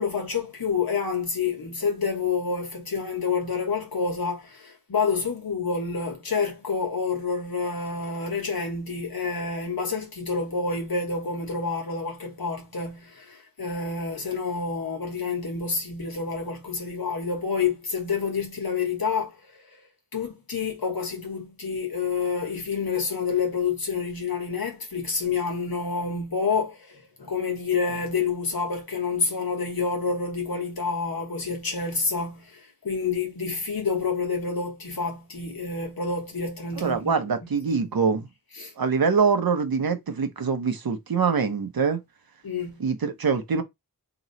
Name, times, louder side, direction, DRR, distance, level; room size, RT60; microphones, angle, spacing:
voice 1, 0.0-19.6 20.1-37.1 37.7-37.9 38.5-38.7 42.4-42.8, left 5 dB, 80° left, 1.3 m, -28 dB
voice 2, 36.8-38.2 38.8-42.0 42.8-43.6, right 5 dB, 80° right, 0.8 m, -24 dB
3.1 x 2.9 x 4.0 m
wide cardioid pair, 60°, 35 cm